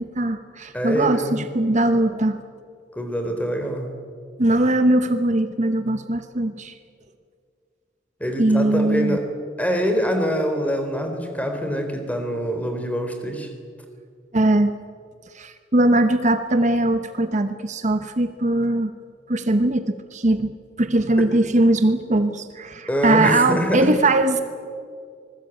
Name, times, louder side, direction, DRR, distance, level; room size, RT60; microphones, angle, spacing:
voice 1, 0.0-2.4 4.4-6.8 8.4-9.2 14.3-14.7 15.3-18.9 19.3-24.4, right 2 dB, 40° right, 9 dB, 1.0 m, -20 dB
voice 2, 0.7-1.4 2.9-3.9 8.2-9.2 9.6-13.5 21.2-21.3 22.9-24.0, equal, 10° left, 5 dB, 3.6 m, -24 dB
26.0 x 20.5 x 9.0 m, 2.3 s
head